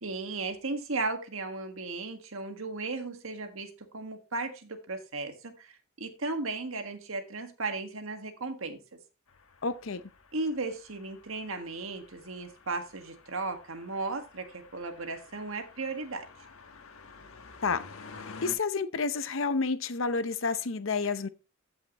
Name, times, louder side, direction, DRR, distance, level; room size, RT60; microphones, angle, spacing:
voice 1, 0.0-8.8 10.3-16.2, right 3 dB, 75° right, 1.6 m, -36 dB
sound 1, 9.3-18.6, left 4 dB, 90° left, 1.3 m, -51 dB
voice 2, 9.6-10.0 17.6-17.9 18.4-21.3, left 4 dB, 70° left, 0.8 m, -29 dB
14.5 x 5.8 x 3.0 m
head